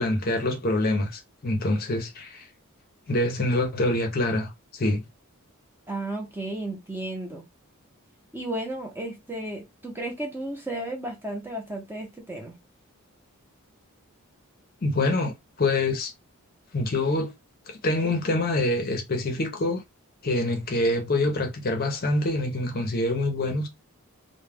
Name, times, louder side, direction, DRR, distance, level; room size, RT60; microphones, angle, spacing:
voice 1, 0.0-2.5 3.1-5.0 14.8-16.1 16.7-17.3 17.7-19.8 20.2-23.7, left 2 dB, 40° left, 0.6 m, -25 dB
voice 2, 5.9-7.4 8.3-12.5, right 1 dB, 10° right, 0.6 m, -33 dB
2.3 x 2.1 x 3.3 m
head